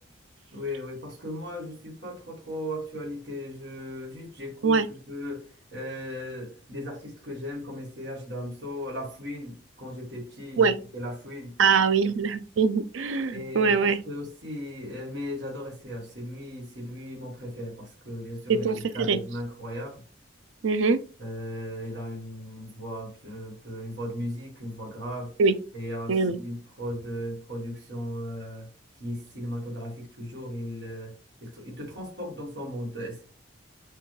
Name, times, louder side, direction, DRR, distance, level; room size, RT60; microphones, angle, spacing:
voice 1, 0.5-11.5 13.3-20.0 21.2-25.3 25.7-28.7 29.0-31.1 31.4-33.2, equal, 60° right, 1.5 m, -37 dB
voice 2, 11.6-14.0 18.5-19.2 20.6-21.0 25.4-25.5 26.1-26.4, right 5 dB, 80° right, 0.5 m, -23 dB
6.7 x 2.5 x 3.2 m
head